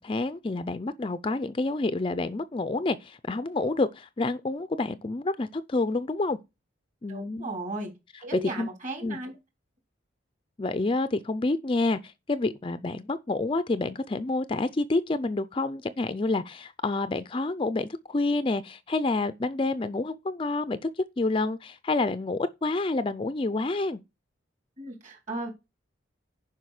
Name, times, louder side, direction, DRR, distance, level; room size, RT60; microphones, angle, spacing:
voice 1, 0.0-6.4 7.0-7.5 8.3-8.7 9.0-9.2 10.6-20.9 21.2-24.0, left 2 dB, 25° left, 0.4 m, -28 dB
voice 2, 7.1-7.9 8.2-9.3 24.8-25.5, right 1 dB, 40° right, 3.4 m, -35 dB
10.0 x 5.5 x 4.8 m
head